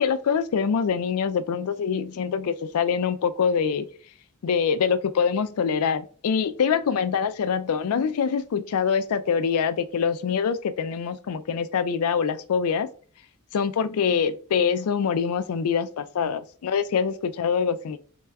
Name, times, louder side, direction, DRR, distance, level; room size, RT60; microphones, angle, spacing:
voice 1, 0.0-3.9 4.4-12.9 13.5-18.0, left 6 dB, 70° left, 0.4 m, -24 dB
4.7 x 4.2 x 2.2 m
head